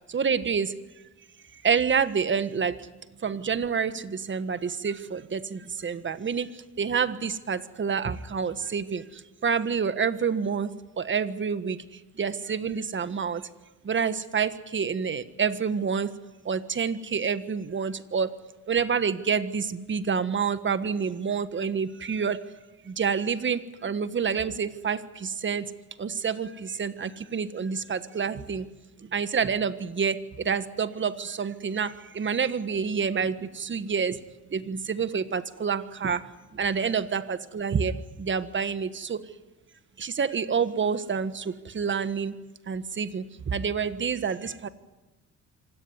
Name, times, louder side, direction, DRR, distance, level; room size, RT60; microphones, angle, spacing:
voice 1, 0.1-0.7 1.6-2.9 3.2-10.7 11.0-13.5 13.8-16.1 16.4-18.3 18.7-22.4 22.8-25.7 26.0-28.7 29.0-34.2 34.5-36.2 36.5-39.3 40.0-42.3 42.7-44.7, right 6 dB, 40° right, 12 dB, 1.6 m, -28 dB
26.0 x 17.5 x 9.8 m, 1.1 s
cardioid pair, 90°, 30 cm